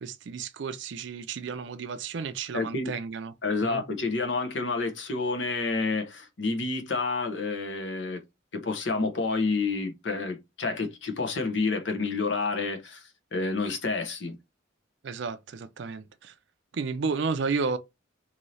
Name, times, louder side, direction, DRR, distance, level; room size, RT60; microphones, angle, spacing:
voice 1, 0.0-3.3 3.6-3.8 15.0-16.3 16.7-17.8, right 5 dB, 65° right, 0.4 m, -32 dB
voice 2, 2.5-2.9 3.4-8.2 8.5-14.4, left 3 dB, 65° left, 0.8 m, -29 dB
2.7 x 2.6 x 3.1 m
head